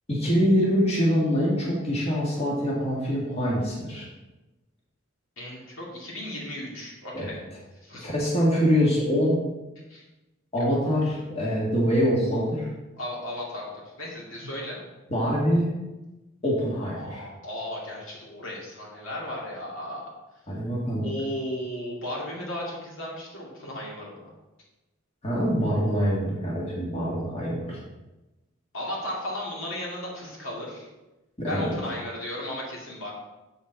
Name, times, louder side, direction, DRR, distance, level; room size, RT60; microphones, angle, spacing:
voice 1, 0.1-4.1 7.1-7.4 8.0-9.4 10.5-12.7 15.1-15.7 16.4-17.3 20.5-21.1 25.2-27.8 31.4-31.7, equal, 30° left, -5 dB, 1.8 m, -24 dB
voice 2, 5.4-7.4 7.8-8.1 9.8-10.0 13.0-14.8 17.0-20.1 21.0-24.3 28.7-30.9 31.4-33.1, left 1 dB, 75° left, -4 dB, 2.4 m, -35 dB
7.2 x 7.0 x 4.0 m, 1.0 s
head